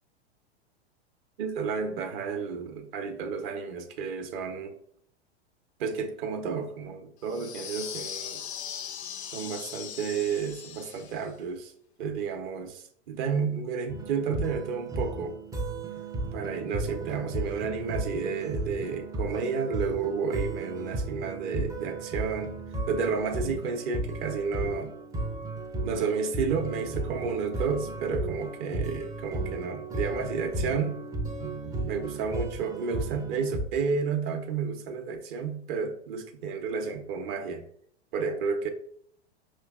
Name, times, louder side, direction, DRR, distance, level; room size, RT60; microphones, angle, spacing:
voice 1, 1.4-4.7 5.8-8.5 9.3-11.7 12.0-15.4 16.3-22.6 22.9-24.9 25.8-31.0 31.8-37.6 38.1-38.7, right 5 dB, 45° right, 0.8 m, -31 dB
sound 1, 7.3-11.3, left 8 dB, 85° left, 0.5 m, -39 dB
sound 2, 13.9-33.6, right 2 dB, 10° right, 0.4 m, -34 dB
5.2 x 3.1 x 2.3 m
hypercardioid pair, 100°, 32 cm